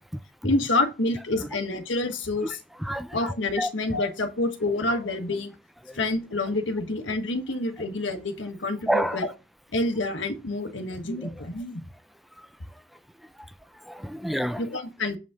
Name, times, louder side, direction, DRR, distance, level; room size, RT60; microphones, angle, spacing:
voice 1, 0.4-2.6 3.1-5.5 5.9-9.3 9.7-11.8 14.6-15.2, left 2 dB, 90° left, 1.4 m, -28 dB
voice 2, 2.4-4.0 5.8-6.0 8.9-9.2 11.2-11.3 12.4-12.5 13.4-13.5 13.8-14.7, right 1 dB, ahead, 0.3 m, -30 dB
7.4 x 5.3 x 3.6 m
head